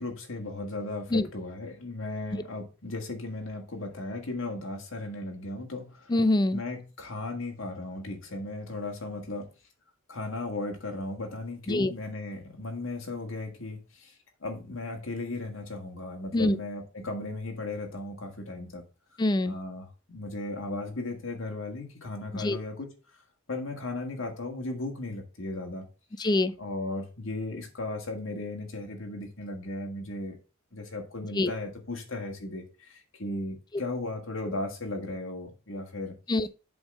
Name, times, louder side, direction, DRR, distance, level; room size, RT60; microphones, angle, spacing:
voice 1, 0.0-6.2 6.5-9.5 10.1-18.8 19.4-22.9 23.5-25.9 26.6-30.4 30.7-36.2, left 2 dB, 75° left, 1.8 m, -36 dB
voice 2, 6.1-6.6 11.7-11.9 16.3-16.6 19.2-19.6 22.3-22.6 26.2-26.5 31.4-31.5 36.3-36.5, left 2 dB, 20° left, 0.4 m, -24 dB
7.8 x 3.7 x 6.3 m
head